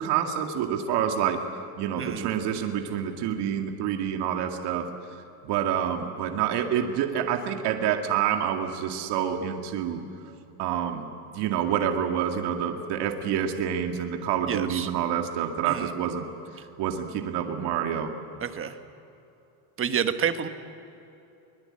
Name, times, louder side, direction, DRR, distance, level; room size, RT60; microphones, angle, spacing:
voice 1, 0.0-1.4 1.8-4.9 5.4-10.0 10.6-11.1 11.3-16.2 16.8-18.1, right 9 dB, 55° right, 4 dB, 2.3 m, -27 dB
voice 2, 2.0-2.3 14.4-14.9 15.6-15.9 18.4-18.8 19.8-20.5, right 8 dB, 25° right, 9 dB, 1.2 m, -29 dB
23.5 x 21.0 x 8.8 m, 2.9 s
cardioid pair, 140°, 48 cm